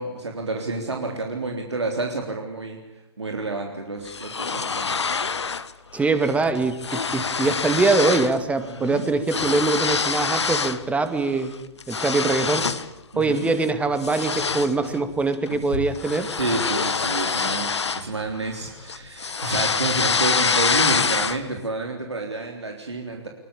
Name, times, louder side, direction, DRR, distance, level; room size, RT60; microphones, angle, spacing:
voice 1, 0.0-2.8 3.2-5.0 8.7-9.0 13.1-13.5 16.3-23.3, right 3 dB, 80° right, 2 dB, 3.7 m, -29 dB
sound 1, 4.1-5.7 6.0-6.3 6.6-8.4 8.7-10.8 11.3-12.9 13.3-13.6 14.0-18.6 18.9-21.6, left 5 dB, 80° left, 1.3 m, -25 dB
voice 2, 5.9-11.5 11.9-12.7 13.2-16.3, right 3 dB, 10° right, 10 dB, 2.3 m, -23 dB
23.5 x 22.0 x 8.6 m, 0.92 s
figure-of-eight pair, 115°, 14 cm